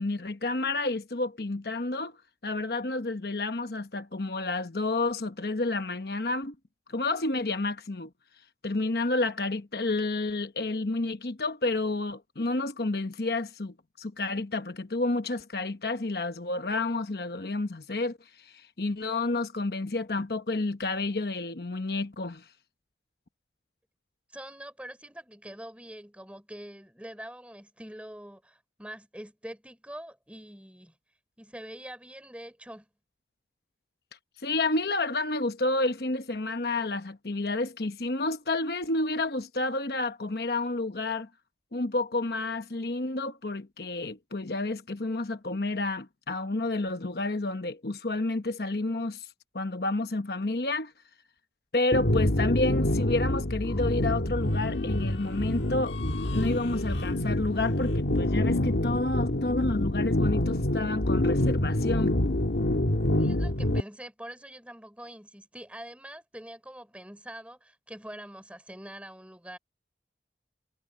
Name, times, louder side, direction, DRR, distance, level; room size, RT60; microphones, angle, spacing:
voice 1, 0.0-2.1 2.4-6.5 6.9-8.1 8.6-22.4 34.4-41.3 41.7-49.3 49.5-50.9 51.7-56.0 56.3-62.1, left 2 dB, 60° left, 1.0 m, -30 dB
voice 2, 24.3-30.9 31.4-32.9 63.2-69.6, right 1 dB, 5° right, 3.7 m, -44 dB
sound 1, 51.9-63.8, left 1 dB, 85° left, 1.7 m, -26 dB
head